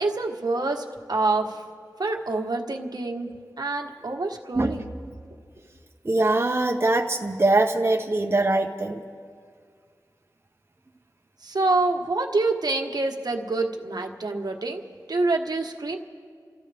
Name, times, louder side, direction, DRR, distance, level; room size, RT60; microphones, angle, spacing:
voice 1, 0.0-1.6 2.0-3.3 3.6-4.8 11.4-14.8 15.1-16.0, right 3 dB, 65° right, 3 dB, 1.3 m, -26 dB
voice 2, 6.0-9.0, right 2 dB, 35° right, 3 dB, 0.8 m, -22 dB
29.5 x 14.0 x 3.4 m, 2.1 s
wide cardioid pair, 60°, 7 cm